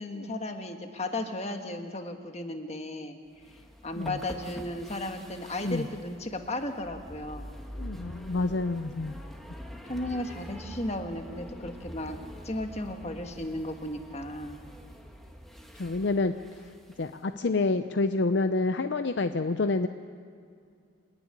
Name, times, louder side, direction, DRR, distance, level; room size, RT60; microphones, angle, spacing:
voice 1, 0.0-3.2 3.8-7.5 9.9-12.2 12.4-14.6, left 1 dB, 30° left, 5 dB, 1.5 m, -35 dB
sound 1, 3.3-17.2, equal, ahead, 1.6 m, -45 dB
voice 2, 7.8-9.2 15.8-16.3 17.0-19.9, left 3 dB, 60° left, 9 dB, 0.6 m, -28 dB
28.0 x 10.5 x 9.9 m, 2.4 s
head